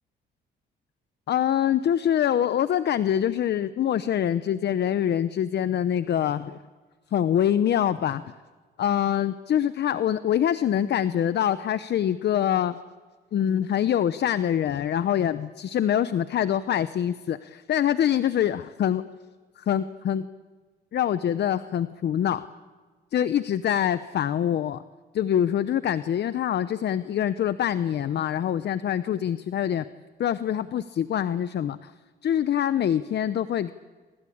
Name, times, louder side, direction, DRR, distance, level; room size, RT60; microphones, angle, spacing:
voice 1, 1.3-6.6 7.1-8.3 8.8-12.8 13.3-19.0 19.6-20.3 20.9-22.5 23.1-24.8 25.1-29.9 30.2-31.9 32.2-33.7, left 10 dB, 60° left, 13 dB, 0.8 m, -25 dB
27.5 x 25.0 x 8.6 m, 1.5 s
cardioid pair, 90°, 20 cm